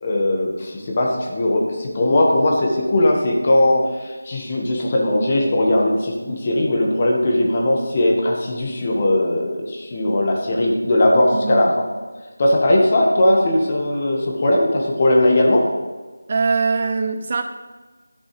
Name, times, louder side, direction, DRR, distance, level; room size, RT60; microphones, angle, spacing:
voice 1, 0.0-11.8 12.4-15.7, left 1 dB, 30° left, 0 dB, 1.5 m, -19 dB
voice 2, 11.3-11.7 16.3-17.4, right 4 dB, 35° right, 7 dB, 0.4 m, -22 dB
12.0 x 5.2 x 3.3 m, 1.3 s
figure-of-eight pair, 165°, 0 cm